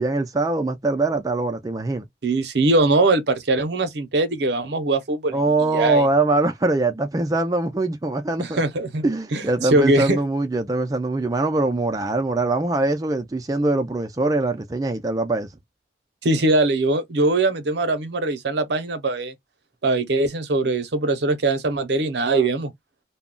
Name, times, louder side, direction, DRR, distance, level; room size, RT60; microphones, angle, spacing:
voice 1, 0.0-2.1 5.3-8.6 9.0-15.5, right 2 dB, 20° right, 0.3 m, -22 dB
voice 2, 2.2-5.4 5.7-6.1 8.4-9.0 9.3-10.2 16.2-19.3 19.8-22.7, right 2 dB, 65° right, 0.6 m, -21 dB
2.2 x 2.0 x 3.7 m
head